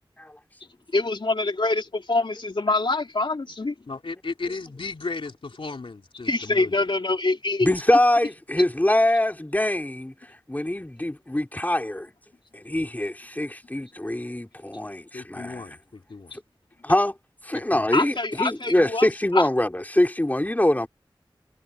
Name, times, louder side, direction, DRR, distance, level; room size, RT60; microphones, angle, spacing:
voice 1, 0.9-3.7 6.2-7.7 16.3-16.4 17.9-19.5, left 3 dB, 65° left, 2.9 m, -25 dB
voice 2, 3.9-6.7 15.1-16.3 17.5-17.9, left 3 dB, 85° left, 3.1 m, -35 dB
voice 3, 7.6-10.1 10.5-12.1 12.5-15.6 16.8-17.1 17.4-20.9, left 1 dB, 20° left, 3.2 m, -23 dB
wide cardioid pair, 65°, 9 cm